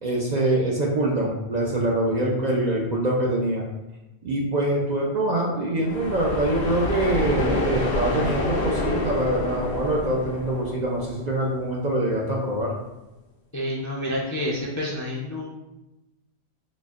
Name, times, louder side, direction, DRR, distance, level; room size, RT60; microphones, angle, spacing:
voice 1, 0.0-3.6 4.2-12.7, right 1 dB, 50° right, -2 dB, 0.5 m, -24 dB
sound 1, 5.8-11.6, left 2 dB, 70° left, 0.9 m, -28 dB
voice 2, 13.5-15.5, left 1 dB, 25° left, -5 dB, 0.4 m, -28 dB
4.1 x 2.1 x 3.5 m, 0.98 s
omnidirectional pair, 1.1 m